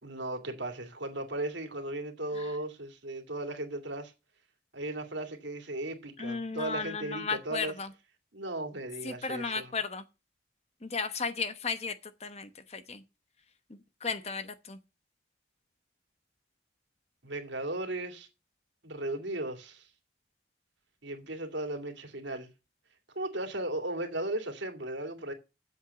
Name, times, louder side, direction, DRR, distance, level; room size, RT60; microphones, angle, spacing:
voice 1, 0.0-4.1 4.7-7.7 8.3-9.8 17.2-18.3 18.8-19.9 21.0-22.5 23.1-25.3, right 1 dB, 80° right, 2.3 m, -36 dB
voice 2, 6.2-7.9 9.0-10.0 10.8-11.9 12.2-13.0 13.7-14.8, left 4 dB, 35° left, 0.9 m, -35 dB
8.0 x 7.4 x 6.9 m
head